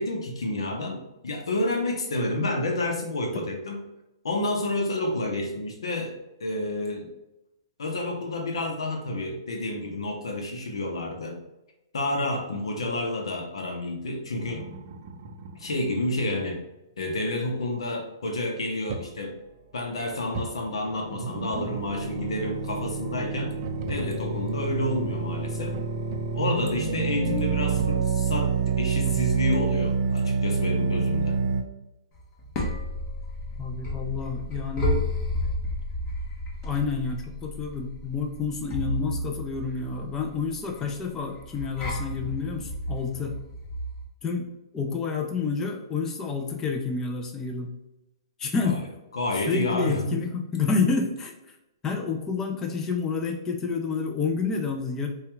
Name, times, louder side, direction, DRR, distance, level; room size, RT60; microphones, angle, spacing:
voice 1, 0.0-3.8 4.2-6.1 6.4-7.1 7.8-11.4 11.9-14.6 15.5-16.6 17.0-19.4 19.7-23.5 23.9-25.8 26.3-31.4 48.6-48.8 49.1-50.2, left 1 dB, 85° left, 2 dB, 0.7 m, -29 dB
sound 1, 14.4-16.4 18.9-19.1 20.3-20.4 20.8-31.6, right 5 dB, 40° right, 0.5 m, -28 dB
sound 2, 32.1-44.0, left 1 dB, 30° left, 1.0 m, -32 dB
voice 2, 33.6-35.0 36.6-43.4 44.2-44.5 44.7-47.7 48.4-48.8 49.5-51.3 51.8-55.1, left 5 dB, 15° left, 3 dB, 0.4 m, -29 dB
4.4 x 2.3 x 3.0 m, 0.92 s
hypercardioid pair, 140°, 3 cm